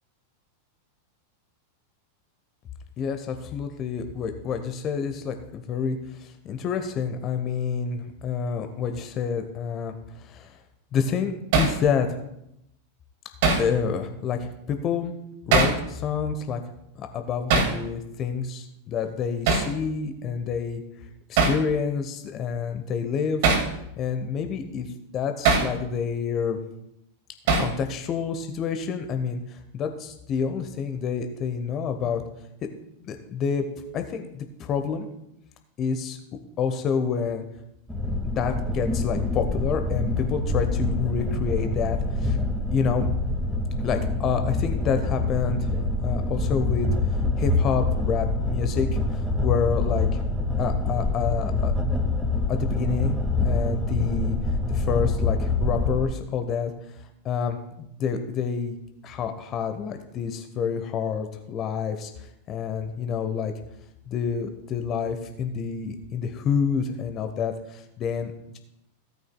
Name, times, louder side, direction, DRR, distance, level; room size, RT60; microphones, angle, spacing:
voice 1, 3.0-10.6 10.9-12.1 13.6-15.1 15.5-16.6 17.0-20.8 21.3-23.4 24.0-24.9 25.1-26.6 27.6-32.2 33.0-33.6 33.9-35.1 35.8-37.4 38.2-42.4 42.7-43.1 43.8-46.9 47.4-50.2 50.6-51.7 52.5-54.4 54.7-56.7 57.0-58.8 59.0-63.5 64.1-68.6, left 6 dB, 30° left, 7 dB, 1.0 m, -28 dB
Hammer, 11.5-11.8 13.4-13.7 15.5-15.8 17.5-17.8 19.5-19.7 21.4-21.6 23.4-23.7 25.4-25.7 27.5-27.8, right 4 dB, 50° right, 2.2 m, -20 dB
sound 1, 37.9-56.0, left 2 dB, 5° right, 1.9 m, -25 dB
17.0 x 9.4 x 2.3 m, 0.81 s
figure-of-eight pair, 90°, 0 cm